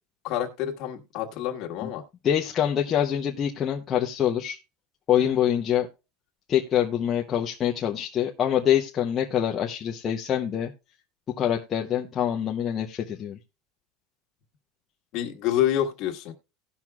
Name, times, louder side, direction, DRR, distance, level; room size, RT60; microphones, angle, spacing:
voice 1, 0.2-2.0 15.1-16.3, left 11 dB, 50° left, 2 dB, 1.6 m, -27 dB
voice 2, 2.2-4.6 5.1-5.9 6.5-10.7 11.3-13.4, left 10 dB, 30° left, 0 dB, 0.7 m, -25 dB
18.0 x 6.0 x 2.3 m, 0.28 s
supercardioid pair, 145°, 0 cm